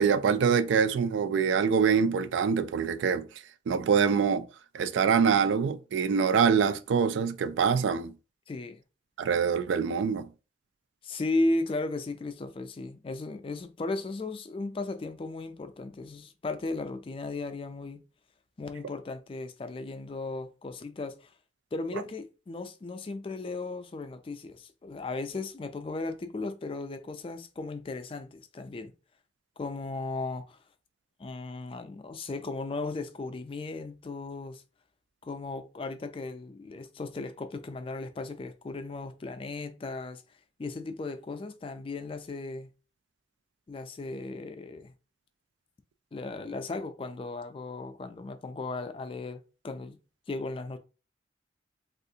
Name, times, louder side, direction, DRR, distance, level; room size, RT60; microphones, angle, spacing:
voice 1, 0.0-3.3 3.7-4.5 4.7-8.1 9.2-10.3, right 6 dB, 80° right, 0.3 m, -25 dB
voice 2, 8.5-8.8 11.0-18.0 18.6-21.3 21.7-28.9 29.6-30.6 31.2-34.6 35.2-40.2 40.6-42.7 43.7-44.9 46.1-50.0 50.3-50.8, left 2 dB, 30° left, 0.3 m, -36 dB
3.5 x 2.4 x 2.6 m
head